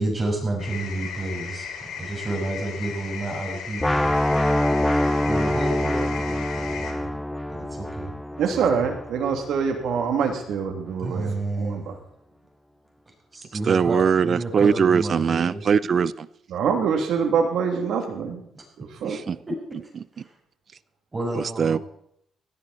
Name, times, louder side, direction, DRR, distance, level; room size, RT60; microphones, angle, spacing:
voice 1, 0.0-4.1 5.2-7.1 7.5-8.1 8.5-8.9 11.0-11.9 13.3-15.6 18.5-18.6 19.5-19.6 20.1-20.3 21.1-21.8, right 2 dB, 25° right, 1 dB, 5.8 m, -30 dB
sound 1, 0.6-6.9, left 7 dB, 85° left, 2.9 m, -36 dB
sound 2, 3.8-9.7, left 1 dB, 10° left, 0.6 m, -25 dB
voice 2, 8.4-12.0 16.5-18.4 18.8-19.2, right 6 dB, 75° right, 4 dB, 2.9 m, -25 dB
voice 3, 13.6-16.3 19.1-19.4 21.4-21.8, right 6 dB, 50° right, 19 dB, 0.6 m, -21 dB
16.5 x 15.5 x 4.3 m, 0.74 s
cardioid pair, 90°, 0 cm